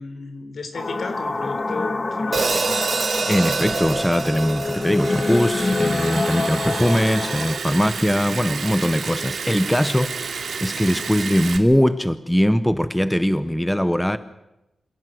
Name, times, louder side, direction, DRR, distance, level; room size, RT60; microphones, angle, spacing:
voice 1, 0.0-2.7, left 4 dB, 65° left, 3.5 m, -34 dB
sound 1, 0.7-7.6, left 3 dB, 30° left, 1.4 m, -26 dB
Hi-hat, 2.3-6.6, right 4 dB, 45° right, 1.9 m, -26 dB
voice 2, 3.3-10.1 10.6-14.2, equal, 5° left, 0.8 m, -21 dB
Liquid, 3.5-11.6, right 5 dB, 70° right, 2.5 m, -31 dB
27.0 x 17.0 x 7.8 m
wide cardioid pair, 150°, 0 cm